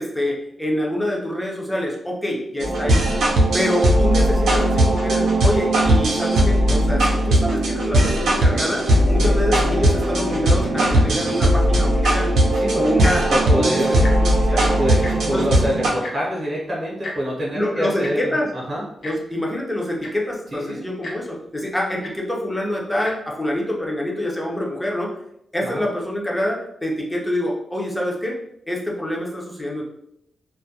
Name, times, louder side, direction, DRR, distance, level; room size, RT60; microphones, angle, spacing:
voice 1, 0.0-3.0 3.5-12.3 12.8-13.9 14.2-14.8 15.3-15.5 17.5-18.5 19.0-25.2 25.5-28.4 28.7-29.8, left 1 dB, 10° left, -2 dB, 0.4 m, -26 dB
sound 1, 2.6-15.9, right 1 dB, 90° right, 0.5 m, -18 dB
Tick-tock, 11.9-12.3 12.9-13.1 13.4-13.6 13.9-14.4 15.0-15.1 16.0-16.1 17.0-17.2 18.0-18.1 19.0-19.1 19.7-19.8 20.0-20.3 21.0-21.1 22.0-22.1 22.9-23.1 23.8-23.9, left 2 dB, 55° left, 0.6 m, -33 dB
voice 2, 13.3-13.9 14.8-18.8 20.5-20.8 25.6-25.8, equal, 35° right, -5 dB, 0.7 m, -26 dB
2.2 x 2.1 x 2.7 m, 0.78 s
wide cardioid pair, 145°, 0 cm